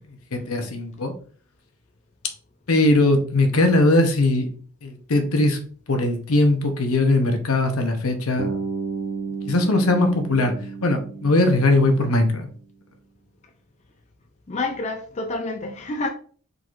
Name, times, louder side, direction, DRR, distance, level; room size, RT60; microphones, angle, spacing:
voice 1, 0.3-1.1 2.7-4.5 4.8-5.6 5.9-8.5 9.4-10.5 10.8-12.5, left 2 dB, 75° left, 0.8 m, -20 dB
Bass guitar, 8.4-12.5, right 4 dB, 40° right, 0.7 m, -32 dB
voice 2, 14.5-16.1, left 2 dB, 30° left, 0.4 m, -28 dB
4.6 x 3.9 x 2.5 m
head